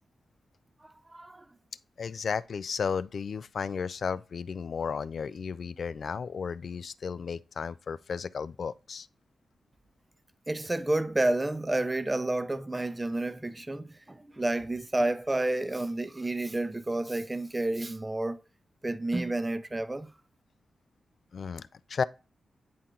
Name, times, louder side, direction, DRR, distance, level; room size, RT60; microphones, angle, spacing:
voice 1, 1.1-1.4 10.5-18.4 18.8-20.1, right 2 dB, 20° right, 0.7 m, -30 dB
voice 2, 2.0-9.1 21.3-22.0, left 6 dB, 65° left, 0.4 m, -34 dB
9.4 x 4.4 x 3.7 m
cardioid pair, 90°, 0 cm